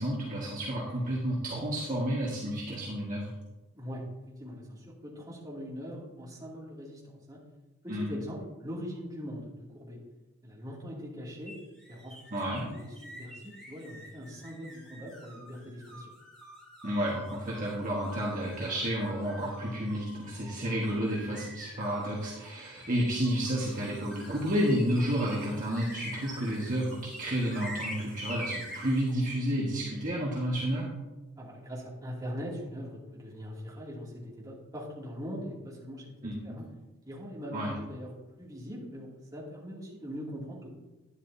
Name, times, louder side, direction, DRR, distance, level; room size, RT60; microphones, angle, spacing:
voice 1, 0.0-3.3 7.9-8.1 12.3-12.7 16.8-30.9 36.2-36.6 37.5-37.7, equal, 40° right, -5 dB, 1.6 m, -31 dB
voice 2, 4.4-7.0 7.3-7.4 7.8-10.0 10.4-11.5 11.9-12.4 12.7-16.1 31.4-36.6 37.0-38.1 38.4-40.7, equal, 15° right, -5 dB, 2.6 m, -41 dB
sound 1, 11.5-29.1, equal, 5° left, 2.6 m, -46 dB
11.5 x 10.0 x 2.8 m, 1.1 s
head